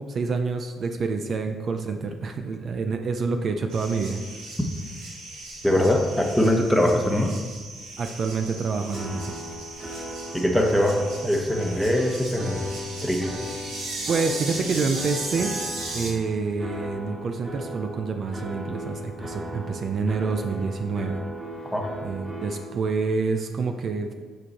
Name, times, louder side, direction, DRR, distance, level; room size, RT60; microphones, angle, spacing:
voice 1, 0.0-4.2 8.0-9.6 14.1-15.5 15.9-21.2 22.0-24.1, right 4 dB, 55° right, 6 dB, 0.5 m, -27 dB
sound 1, 3.7-16.1, right 2 dB, 85° right, 1.7 m, -37 dB
voice 2, 5.6-7.3 10.3-12.7 13.0-13.4 21.7-21.9, left 1 dB, ahead, 2 dB, 1.1 m, -22 dB
sound 2, 8.9-22.7, equal, 25° right, 2.0 m, -37 dB
7.7 x 4.7 x 4.3 m, 1.6 s
cardioid pair, 90°, 0 cm